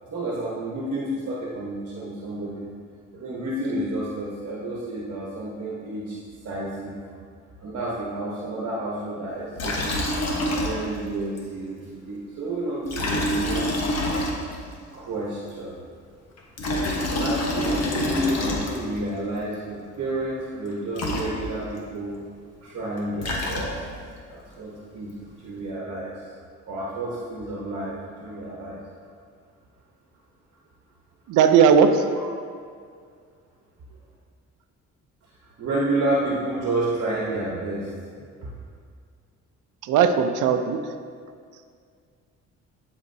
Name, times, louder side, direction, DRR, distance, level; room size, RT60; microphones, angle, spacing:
voice 1, 0.0-2.6 3.1-6.2 6.4-7.0 7.6-10.0 10.6-13.8 14.9-15.8 17.2-22.1 22.6-23.8 24.3-26.1 26.7-28.8 35.6-37.9 38.2-38.3, right 1 dB, 55° right, -5 dB, 1.2 m, -30 dB
Liquid, 9.6-11.1 11.4-11.5 12.8-14.7 16.4-19.0 20.7-20.8 20.9-21.8 22.9-24.1, left 1 dB, 55° left, 1.3 m, -26 dB
voice 2, 31.3-32.1 39.8-40.9, right 7 dB, 85° right, 7 dB, 0.6 m, -18 dB
12.0 x 4.3 x 2.8 m, 2.1 s
cardioid pair, 90°, 30 cm